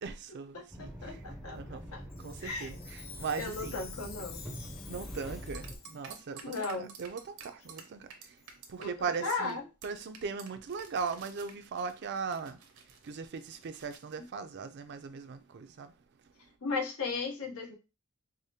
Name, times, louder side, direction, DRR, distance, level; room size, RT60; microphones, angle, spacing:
voice 1, 0.0-1.2 1.5-1.9 2.2-3.8 4.9-8.4 8.7-9.6 9.8-12.6 13.0-15.9, right 5 dB, 50° right, 0.4 m, -39 dB
voice 2, 0.5-2.1 2.4-2.8 3.4-4.4 6.4-6.9 8.8-9.6 16.6-17.7, left 4 dB, 80° left, 1.0 m, -36 dB
sound 1, 0.7-5.8, equal, ahead, 0.5 m, -44 dB
Chime, 2.1-6.2 6.8-6.9 7.6-7.8 8.4-8.5 9.2-9.3 10.0-10.1 10.8-10.9, left 6 dB, 45° left, 0.6 m, -50 dB
sound 2, 5.5-8.9 9.1-9.5 9.8-9.9 10.1-14.1, right 6 dB, 80° right, 0.7 m, -51 dB
4.8 x 2.1 x 2.8 m
head